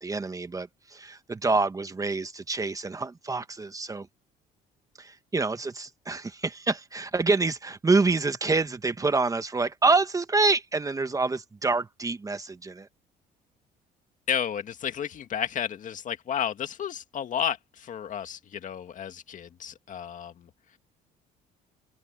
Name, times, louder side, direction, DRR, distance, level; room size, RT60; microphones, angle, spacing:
voice 1, 0.0-4.1 5.0-12.9, right 3 dB, 20° right, 1.2 m, -27 dB
voice 2, 14.3-20.5, left 8 dB, 50° left, 2.0 m, -32 dB
cardioid pair, 110°, 17 cm